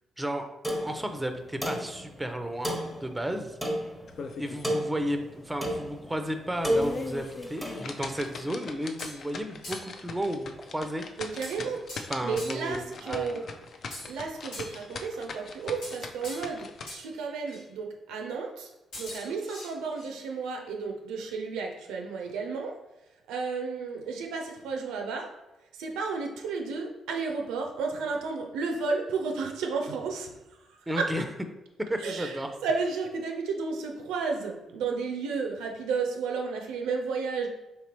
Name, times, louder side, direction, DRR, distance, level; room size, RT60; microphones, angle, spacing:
voice 1, 0.2-0.5 0.8-3.6 4.4-11.0 12.1-13.5 30.9-31.2 31.9-32.6, equal, 15° right, 7 dB, 0.5 m, -33 dB
sound 1, 0.6-8.4, equal, 10° left, 0.9 m, -34 dB
sound 2, 4.1-4.8 5.2-5.3 5.8-5.9 6.5-16.9, left 4 dB, 55° left, 0.3 m, -40 dB
sound 3, 8.6-9.3 9.6-10.0 11.4-12.7 13.9-15.0 15.8-16.6 16.9-17.1 17.5-17.6 18.9-20.1, left 1 dB, 75° left, 1.1 m, -43 dB
voice 2, 11.2-11.8 12.2-13.4 14.1-18.7 19.0-22.8 23.3-25.3 25.8-30.4 30.7-31.1 32.0-37.5, right 4 dB, 70° right, 2 dB, 0.4 m, -32 dB
3.3 x 2.9 x 2.9 m, 0.96 s
hypercardioid pair, 40°, 0 cm